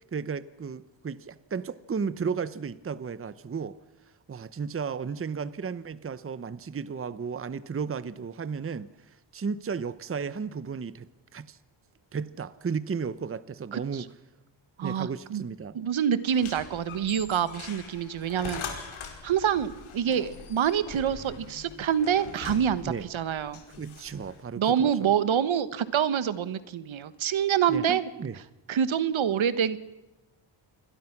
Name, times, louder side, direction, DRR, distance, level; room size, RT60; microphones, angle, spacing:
voice 1, 0.0-3.8 4.3-8.9 9.3-11.1 11.3-11.6 12.1-14.1 14.8-15.8 22.8-23.1 23.7-25.1 27.7-28.4, right 6 dB, 30° right, 0.8 m, -34 dB
voice 2, 13.7-14.0 14.8-15.4 15.7-18.6 19.2-23.6 24.6-28.1 28.7-29.8, right 8 dB, 75° right, 1.4 m, -26 dB
sound 1, 16.3-24.4, left 5 dB, 85° left, 5.1 m, -42 dB
28.5 x 22.5 x 6.0 m
wide cardioid pair, 130°, 48 cm